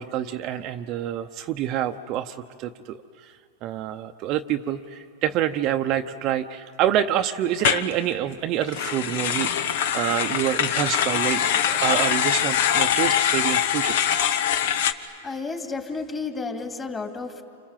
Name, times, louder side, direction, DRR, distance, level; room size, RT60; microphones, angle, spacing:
voice 1, 0.0-3.3 3.6-14.0, right 11 dB, 40° right, 6 dB, 0.8 m, -27 dB
sound 1, 7.6-7.9 8.6-14.9, left 9 dB, 65° left, 1.1 m, -23 dB
voice 2, 15.0-17.4, left 4 dB, 20° left, 3 dB, 2.8 m, -32 dB
29.5 x 25.5 x 7.5 m, 2.2 s
supercardioid pair, 135°, 0 cm